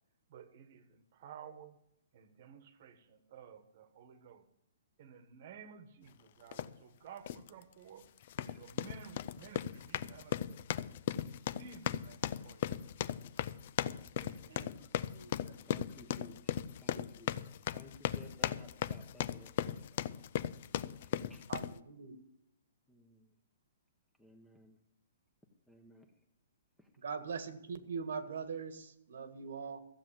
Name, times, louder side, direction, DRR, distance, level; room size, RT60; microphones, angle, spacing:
voice 1, 0.3-1.8 2.1-4.5 5.0-8.1 8.4-10.6 11.2-12.7 13.2-14.6, right 7 dB, 40° right, 11 dB, 1.3 m, -54 dB
sound 1, 6.5-6.7 7.3-7.5 8.2-21.8, left 10 dB, 40° left, 0.4 m, -37 dB
voice 2, 14.4-14.8 15.1-15.5 16.9-17.0 21.5-22.1 27.0-29.8, right 5 dB, 75° right, 10 dB, 1.7 m, -42 dB
voice 3, 15.3-20.0 20.7-21.5 22.9-23.3 24.2-24.8 25.7-26.1 26.8-26.9, left 1 dB, 5° left, 4 dB, 0.9 m, -58 dB
14.5 x 7.7 x 7.5 m, 0.77 s
hypercardioid pair, 170°, 0 cm